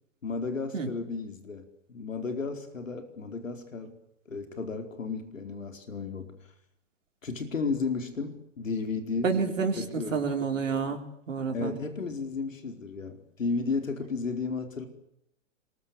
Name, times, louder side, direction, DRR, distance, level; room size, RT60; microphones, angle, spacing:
voice 1, 0.2-3.9 4.3-6.3 7.2-9.4 9.8-10.3 11.5-14.9, left 4 dB, 80° left, 6 dB, 4.6 m, -33 dB
voice 2, 9.2-11.0 11.3-11.8, right 5 dB, 75° right, 4 dB, 4.1 m, -29 dB
27.5 x 22.5 x 7.0 m, 0.73 s
figure-of-eight pair, 115°, 38 cm